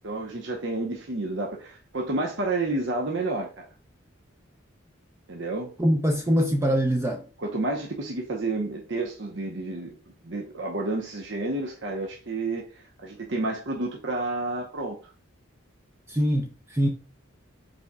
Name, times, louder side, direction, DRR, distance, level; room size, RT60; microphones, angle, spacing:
voice 1, 0.0-3.7 5.3-5.7 7.4-9.9 10.2-15.0, right 2 dB, 60° right, 0.8 m, -30 dB
voice 2, 5.8-7.2 16.1-16.9, equal, 15° right, 0.4 m, -23 dB
5.3 x 4.2 x 2.2 m
head